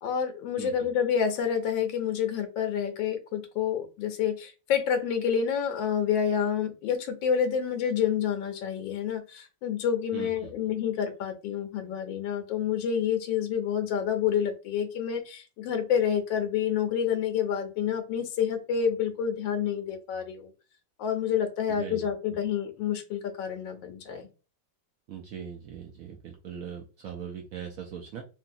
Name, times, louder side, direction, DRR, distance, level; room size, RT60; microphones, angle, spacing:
voice 1, 0.0-20.5 21.0-24.3, left 8 dB, 85° left, 6 dB, 1.3 m, -28 dB
voice 2, 0.6-0.9 10.1-10.5 21.7-22.1 25.1-28.2, right 8 dB, 85° right, 1 dB, 0.7 m, -40 dB
3.0 x 2.7 x 2.5 m, 0.32 s
omnidirectional pair, 2.0 m